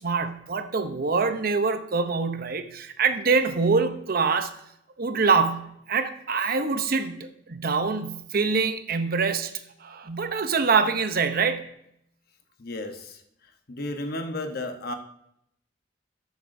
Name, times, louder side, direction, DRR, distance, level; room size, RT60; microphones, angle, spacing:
voice 1, 0.0-4.5 5.0-9.5 9.8-11.6, right 4 dB, 55° right, 9 dB, 0.7 m, -25 dB
voice 2, 12.6-14.9, left 1 dB, 55° left, 5 dB, 1.0 m, -34 dB
11.5 x 8.0 x 2.7 m, 0.74 s
head